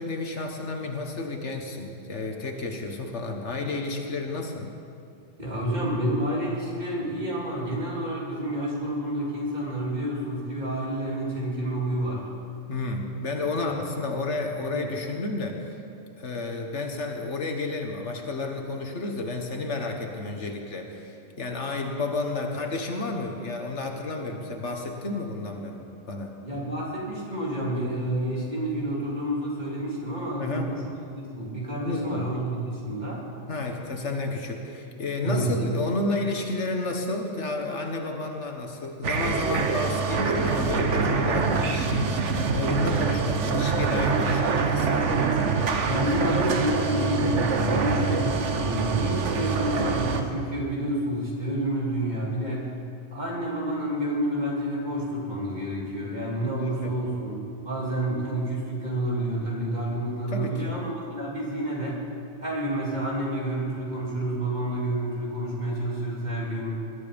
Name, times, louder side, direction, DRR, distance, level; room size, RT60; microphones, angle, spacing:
voice 1, 0.0-4.7 12.7-15.8 16.2-26.3 30.4-30.7 31.8-32.2 33.5-45.1 56.6-57.0 60.3-60.7, left 3 dB, 65° left, 3 dB, 1.7 m, -31 dB
voice 2, 5.4-12.2 13.5-13.7 14.7-14.9 24.2-24.6 26.4-30.9 31.2-33.2 35.2-35.5 45.8-52.7 53.1-62.0 62.4-66.8, right 1 dB, 35° right, -4 dB, 3.5 m, -29 dB
sound 1, 39.0-50.2, right 5 dB, 70° right, 1.3 m, -25 dB
21.0 x 12.5 x 5.2 m, 2.5 s
omnidirectional pair, 1.3 m